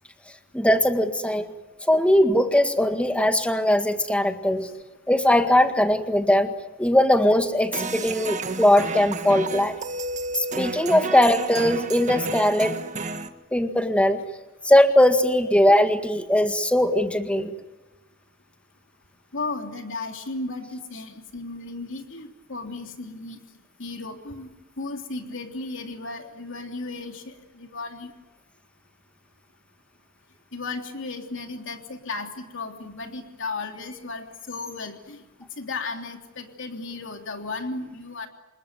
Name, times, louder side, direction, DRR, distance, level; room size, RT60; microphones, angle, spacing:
voice 1, 0.5-1.5 1.8-4.7 5.1-6.5 6.8-9.8 10.4-12.8 13.5-14.2 14.6-17.5, left 1 dB, 5° left, 7 dB, 1.8 m, -20 dB
sound 1, 7.7-13.3, right 3 dB, 35° right, 1.6 m, -32 dB
voice 2, 19.3-23.4 23.8-24.5 24.8-28.1 30.5-35.2 35.6-38.3, left 3 dB, 65° left, 4 dB, 3.2 m, -35 dB
27.0 x 20.5 x 9.5 m, 1.1 s
head